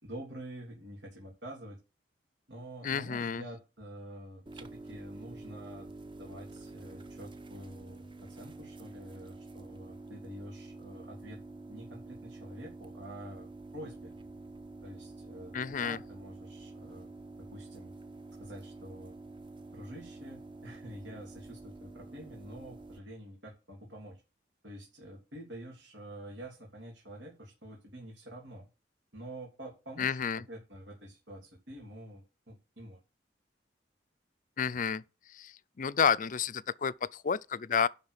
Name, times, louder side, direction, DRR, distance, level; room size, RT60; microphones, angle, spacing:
voice 1, 0.0-1.8 2.5-5.9 6.2-11.4 11.7-14.1 14.8-17.1 17.4-17.9 18.4-19.2 19.7-24.2 24.6-28.7 29.1-33.0, right 1 dB, 75° right, 3.2 m, -47 dB
voice 2, 2.8-3.4 15.5-16.0 30.0-30.4 34.6-35.0 35.3-37.9, left 6 dB, 45° left, 0.5 m, -30 dB
sound 1, 4.5-23.0, right 2 dB, 25° right, 1.0 m, -48 dB
11.0 x 4.3 x 6.7 m
head